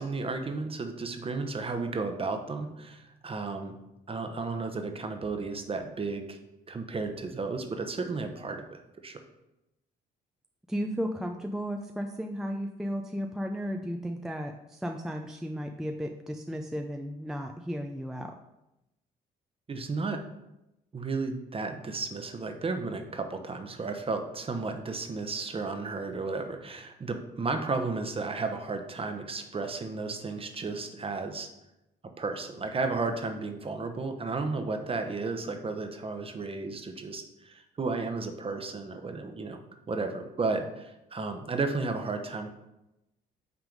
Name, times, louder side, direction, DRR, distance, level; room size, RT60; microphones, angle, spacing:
voice 1, 0.0-3.8 4.1-6.4 6.7-9.2 19.7-20.2 20.9-31.5 32.2-39.6 39.9-42.5, right 3 dB, 30° right, 6 dB, 0.9 m, -33 dB
voice 2, 10.7-18.4, equal, 5° right, 4 dB, 0.4 m, -34 dB
5.9 x 3.6 x 5.2 m, 0.91 s
supercardioid pair, 75°, 19 cm